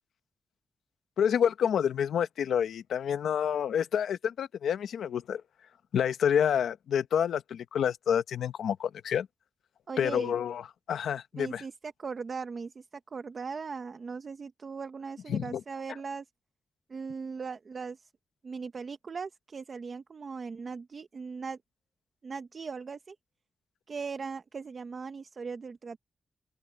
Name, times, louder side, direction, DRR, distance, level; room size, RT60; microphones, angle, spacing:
voice 1, 1.2-5.4 5.9-9.3 10.0-11.6 15.3-15.6, left 8 dB, 90° left, 1.1 m, -28 dB
voice 2, 9.9-10.4 11.4-12.9 13.1-16.2 16.9-18.1 18.4-21.6 22.2-23.1 23.9-26.0, right 5 dB, 40° right, 1.0 m, -39 dB
open air
wide cardioid pair, 140°, 0 cm